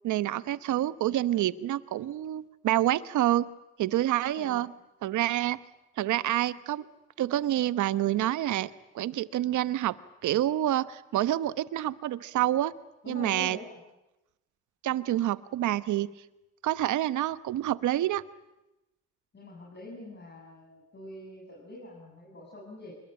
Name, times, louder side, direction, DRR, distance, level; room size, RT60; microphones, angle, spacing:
voice 1, 0.0-3.5 3.8-4.7 5.0-5.6 6.0-6.9 7.2-9.9 10.2-12.7 13.1-13.6 14.8-16.1 16.6-18.2, right 13 dB, 75° right, 15 dB, 1.1 m, -27 dB
voice 2, 4.3-4.6 13.0-13.8 19.3-22.9, left 1 dB, 35° left, -3 dB, 7.6 m, -44 dB
26.5 x 22.0 x 8.8 m, 0.93 s
cardioid pair, 90°, 30 cm